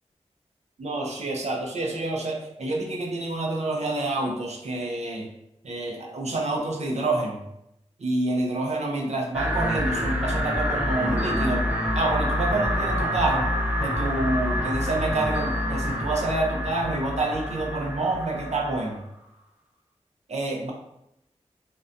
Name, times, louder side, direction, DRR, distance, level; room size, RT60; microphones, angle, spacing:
voice 1, 0.8-5.3 5.6-7.4 8.0-13.5 13.8-19.0 20.3-20.7, right 2 dB, 65° right, 0 dB, 0.5 m, -28 dB
sound 1, 9.3-18.8, equal, 10° right, 0.5 m, -27 dB
2.6 x 2.2 x 2.5 m, 0.83 s
wide cardioid pair, 95°, 12 cm